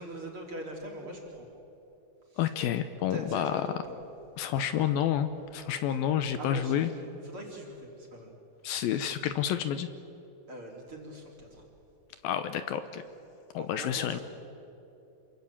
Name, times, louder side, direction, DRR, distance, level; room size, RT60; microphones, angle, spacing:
voice 1, 0.0-1.5 2.3-2.5 3.1-4.0 6.4-8.3 10.5-11.7 13.6-14.2, right 1 dB, 35° right, 0 dB, 4.1 m, -42 dB
voice 2, 2.4-3.6 4.4-6.9 8.6-9.9 12.2-13.0 13.5-14.2, left 10 dB, 75° left, 10 dB, 2.5 m, -29 dB
27.0 x 22.5 x 8.6 m, 2.9 s
omnidirectional pair, 4.5 m